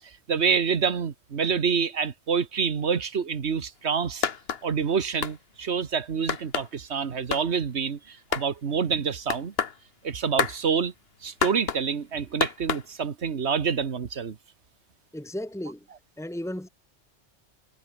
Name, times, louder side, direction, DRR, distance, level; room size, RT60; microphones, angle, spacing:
voice 1, 0.3-4.3 4.6-9.5 10.0-10.9 11.2-14.4, right 6 dB, 65° right, 1.6 m, -27 dB
sound 1, 4.2-4.6 5.2-5.4 6.3-6.7 7.3-7.4 8.3-8.5 9.3-9.8 10.4-10.6 11.4-11.8 12.4-12.8, left 6 dB, 55° left, 1.4 m, -27 dB
voice 2, 15.1-15.9 16.2-16.7, left 1 dB, ahead, 2.2 m, -34 dB
omnidirectional pair, 1.2 m